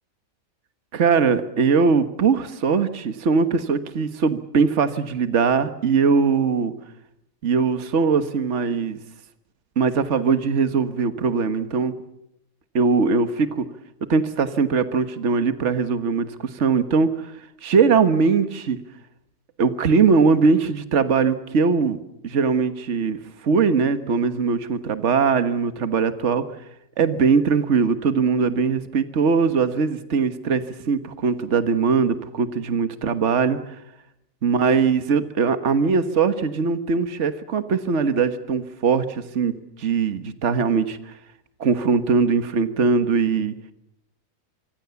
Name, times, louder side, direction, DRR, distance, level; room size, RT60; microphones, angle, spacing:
voice 1, 0.9-6.7 7.4-9.0 9.8-11.9 12.7-13.7 14.1-17.3 17.6-18.8 19.6-22.0 22.2-23.2 23.4-26.4 27.0-33.8 34.4-41.0 41.6-43.5, right 5 dB, 45° right, 10 dB, 1.6 m, -21 dB
26.0 x 24.5 x 7.1 m, 0.82 s
omnidirectional pair, 1.8 m